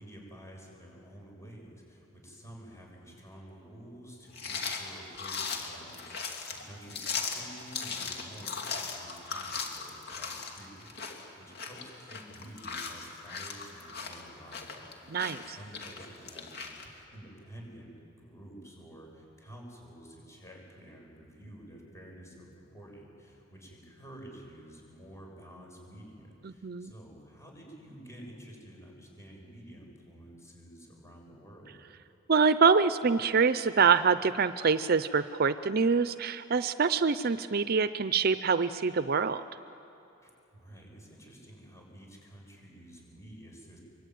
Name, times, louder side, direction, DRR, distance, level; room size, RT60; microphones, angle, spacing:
voice 1, 0.0-16.7 17.1-31.7 40.2-43.8, right 1 dB, 15° left, 0 dB, 7.0 m, -50 dB
sound 1, 4.3-16.9, left 5 dB, 55° left, 2.9 m, -38 dB
voice 2, 15.1-15.6 26.4-26.9 32.3-39.4, right 5 dB, 50° right, 13 dB, 0.6 m, -25 dB
24.0 x 24.0 x 9.4 m, 2.8 s
head